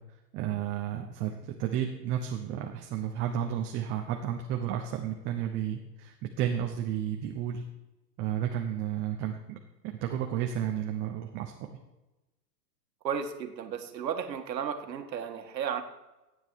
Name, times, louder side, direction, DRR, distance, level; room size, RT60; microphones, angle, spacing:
voice 1, 0.3-7.6 8.2-9.6 9.8-11.7, right 10 dB, 25° right, 3 dB, 0.9 m, -32 dB
voice 2, 13.0-15.8, right 7 dB, 85° right, 5 dB, 1.9 m, -34 dB
15.5 x 9.4 x 4.6 m, 1.0 s
hypercardioid pair, 150°, 49 cm